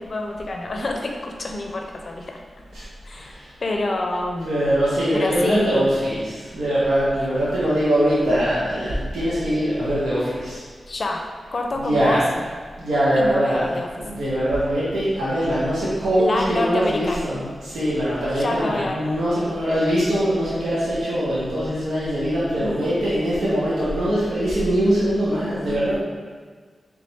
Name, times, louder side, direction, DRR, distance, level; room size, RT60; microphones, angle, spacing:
voice 1, 0.0-2.4 3.0-4.5 5.1-5.7 10.9-12.2 13.1-13.9 16.2-17.3 18.3-19.0 22.5-22.8 25.6-25.8, left 2 dB, 55° left, 2 dB, 0.5 m, -27 dB
voice 2, 3.2-3.5 4.4-10.6 11.8-12.2 12.8-26.0, equal, 90° right, -10 dB, 1.1 m, -22 dB
4.0 x 3.3 x 3.4 m, 1.5 s
cardioid pair, 60°, 0 cm